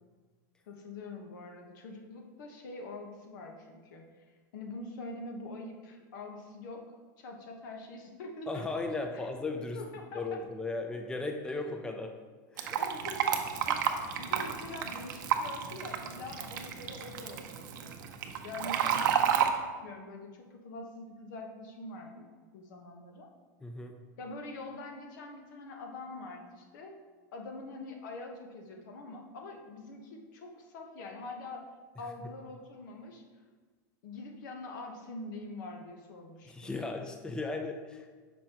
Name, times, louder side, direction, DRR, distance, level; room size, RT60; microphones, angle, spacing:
voice 1, 0.7-8.8 9.1-9.3 9.6-10.4 12.8-17.9 18.4-23.3 24.2-27.0 27.3-31.6 32.0-33.2 34.0-36.7, left 2 dB, 70° left, 2 dB, 1.1 m, -44 dB
voice 2, 8.5-9.8 10.1-12.1 12.5-12.8 23.6-23.9 36.5-38.1, left 3 dB, 10° left, 4 dB, 0.5 m, -36 dB
Fill (with liquid), 12.6-19.5, right 8 dB, 75° right, 0.6 m, -31 dB
6.3 x 5.1 x 2.9 m, 1.4 s
hypercardioid pair, 115°, 11 cm